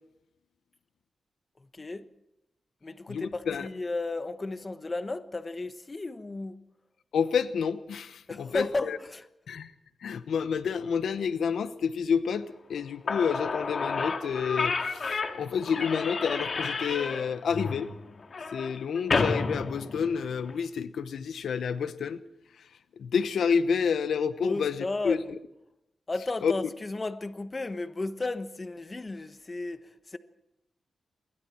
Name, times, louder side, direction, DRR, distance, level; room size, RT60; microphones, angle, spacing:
voice 1, 1.7-2.0 2.8-6.6 8.3-9.2 24.4-25.3 26.1-30.2, left 2 dB, 25° left, 1.2 m, -34 dB
voice 2, 3.1-3.7 7.1-9.0 9.5-9.7 10.0-17.9 18.5-22.2 23.0-25.2 26.4-26.5, left 6 dB, 85° left, 1.0 m, -29 dB
Slam / Squeak, 12.8-12.9 13.1-20.5, left 4 dB, 50° left, 2.0 m, -31 dB
27.5 x 22.0 x 4.4 m
wide cardioid pair, 120°, 0 cm